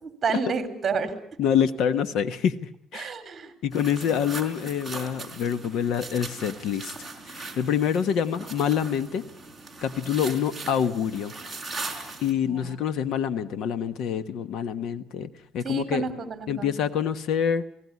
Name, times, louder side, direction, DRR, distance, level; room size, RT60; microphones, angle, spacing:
voice 1, 0.0-1.1 2.9-3.5 12.5-12.8 15.6-16.7, right 5 dB, 30° right, 9 dB, 3.5 m, -30 dB
voice 2, 1.4-3.1 3.6-6.9 7.3-9.2 9.8-11.3 12.2-16.0 16.5-17.6, left 8 dB, 75° left, 12 dB, 1.4 m, -26 dB
sound 1, 3.7-12.3, right 3 dB, ahead, 4.5 m, -39 dB
30.0 x 18.5 x 9.7 m, 0.70 s
cardioid pair, 165°, 0 cm